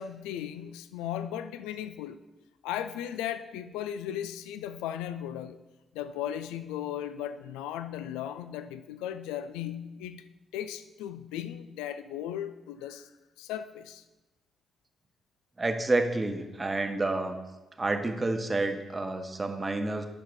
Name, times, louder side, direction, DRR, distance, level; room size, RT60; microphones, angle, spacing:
voice 1, 0.0-2.2 2.6-5.6 5.9-10.3 10.5-13.1 13.4-14.0, left 10 dB, 85° left, 0.4 m, -36 dB
voice 2, 15.6-17.4 17.8-20.0, right 2 dB, 30° right, 1.1 m, -29 dB
9.1 x 5.8 x 5.2 m
hypercardioid pair, 50°, 0 cm